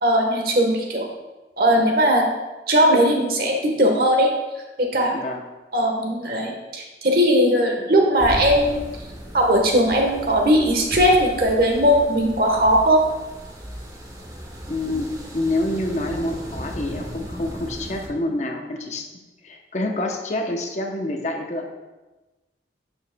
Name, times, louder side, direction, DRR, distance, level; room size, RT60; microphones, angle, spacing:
voice 1, 0.0-1.1 1.6-2.3 2.7-4.3 4.8-5.1 5.7-8.8 9.3-13.0, equal, 55° right, 1 dB, 1.2 m, -18 dB
voice 2, 5.1-5.5 14.7-19.1 19.4-21.7, left 1 dB, 40° left, 2 dB, 0.7 m, -27 dB
sound 1, 8.2-18.1, equal, 20° right, 0.9 m, -36 dB
8.3 x 7.0 x 2.2 m, 1.1 s
head